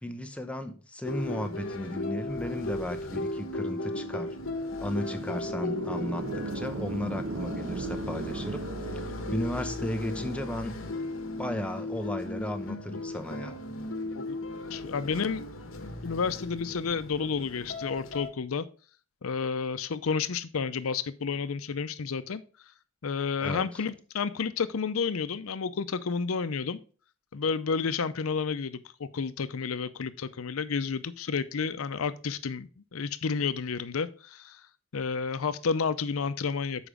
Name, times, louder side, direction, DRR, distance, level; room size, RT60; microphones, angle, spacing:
voice 1, 0.0-4.4 4.8-8.6 9.3-10.7 11.4-13.6 23.4-23.8, left 1 dB, 5° left, 7 dB, 0.7 m, -35 dB
sound 1, 1.0-18.3, left 2 dB, 70° left, 1.1 m, -36 dB
sound 2, 5.0-9.9, right 3 dB, 70° right, 1.0 m, -37 dB
voice 2, 14.7-15.5 16.0-18.6 19.2-22.4 23.0-26.8 27.3-34.6 34.9-36.9, left 5 dB, 90° left, 14 dB, 0.6 m, -31 dB
7.1 x 5.0 x 4.9 m, 0.38 s
head